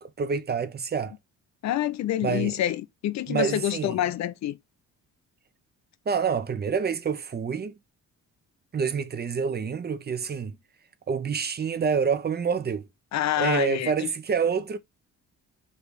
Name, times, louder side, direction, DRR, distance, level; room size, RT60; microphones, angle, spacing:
voice 1, 0.0-1.1 2.2-2.6 3.3-4.0 6.1-7.7 8.7-10.6 11.1-12.9 13.4-14.8, right 6 dB, 35° right, 0.7 m, -27 dB
voice 2, 1.6-4.6 13.1-14.1, left 12 dB, 65° left, 0.5 m, -27 dB
3.3 x 2.8 x 4.6 m
cardioid pair, 90°, 30 cm